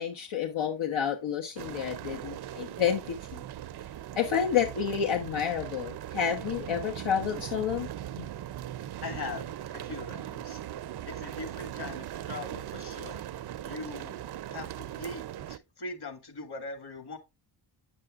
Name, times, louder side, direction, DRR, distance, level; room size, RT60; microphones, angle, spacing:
voice 1, 0.0-3.4 4.1-7.9 8.2-8.3, left 8 dB, 80° left, 1.2 m, -30 dB
sound 1, 1.6-15.6, right 12 dB, 55° right, 0.5 m, -39 dB
voice 2, 9.0-10.6 11.1-13.2 13.6-14.2 14.5-15.2 15.5-17.2, left 3 dB, 55° left, 2.3 m, -41 dB
9.0 x 7.5 x 2.4 m
wide cardioid pair, 130°, 48 cm